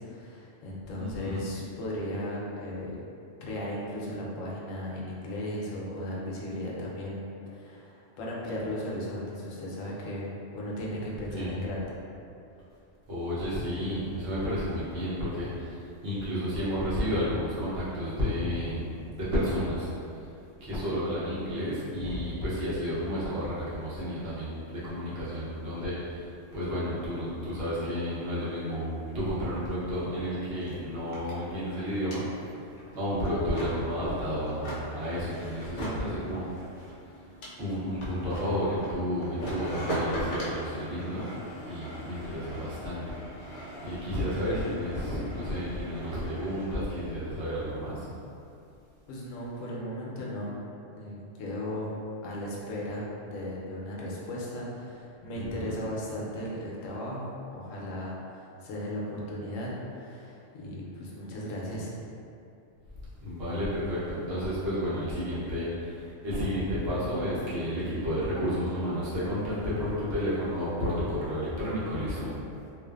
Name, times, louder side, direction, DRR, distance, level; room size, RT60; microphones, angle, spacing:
voice 1, 0.0-3.0 3.4-7.2 7.5-11.9 49.1-50.6 50.9-52.0 52.2-62.0, left 1 dB, 85° left, -4 dB, 0.9 m, -36 dB
voice 2, 0.9-1.4 11.3-11.6 13.1-19.9 20.6-26.2 26.5-32.2 32.9-36.4 37.6-41.3 41.7-48.1 55.3-55.8 63.2-72.4, equal, 60° right, -10 dB, 0.9 m, -31 dB
sound 1, 30.3-46.8, equal, 60° left, 0.5 m, -40 dB
2.5 x 2.4 x 2.3 m, 2.6 s
omnidirectional pair, 1.3 m